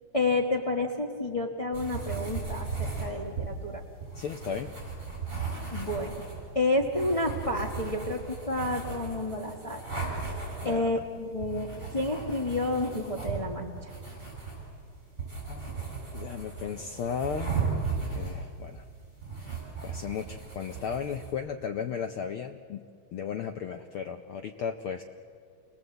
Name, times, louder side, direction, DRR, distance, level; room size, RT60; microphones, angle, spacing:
voice 1, 0.1-3.8 5.7-6.2 6.5-9.8 10.6-13.9, left 2 dB, 55° left, 0 dB, 0.3 m, -30 dB
sound 1, 1.7-21.3, right 4 dB, 25° right, 7.9 m, -37 dB
voice 2, 4.1-4.7 10.6-10.9 15.5-15.7 16.1-17.6 18.1-18.8 19.4-19.6 19.8-22.9 23.1-25.0, left 7 dB, 85° left, 7 dB, 1.2 m, -35 dB
27.5 x 20.5 x 7.8 m, 2.3 s
omnidirectional pair, 3.3 m